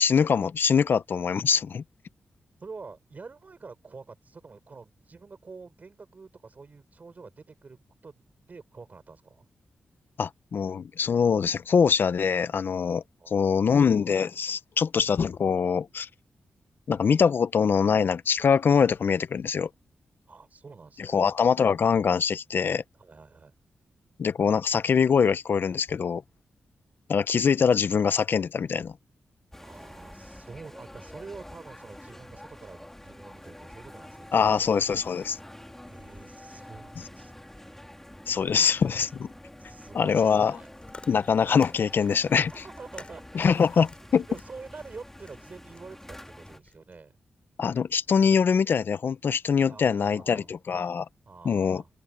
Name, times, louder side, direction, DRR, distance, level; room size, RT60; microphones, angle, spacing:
voice 1, 0.0-1.8 10.2-13.0 13.3-16.1 16.9-19.7 21.0-22.8 24.2-26.2 27.1-28.9 34.3-35.4 38.3-39.3 39.9-40.6 41.1-42.6 43.3-44.2 47.6-51.1 51.4-51.8, left 6 dB, 60° left, 0.7 m, -23 dB
voice 2, 2.6-9.5 13.2-13.8 20.3-21.2 23.0-23.5 29.6-34.9 35.9-38.0 39.6-40.7 42.2-43.8 44.1-47.1 49.7-50.5 51.3-51.9, right 4 dB, 45° right, 4.2 m, -47 dB
sound 1, 29.5-46.6, left 1 dB, 10° left, 3.6 m, -47 dB
Chewing mastication, 40.6-47.0, left 3 dB, 30° left, 6.8 m, -51 dB
open air
wide cardioid pair, 95°, 4 cm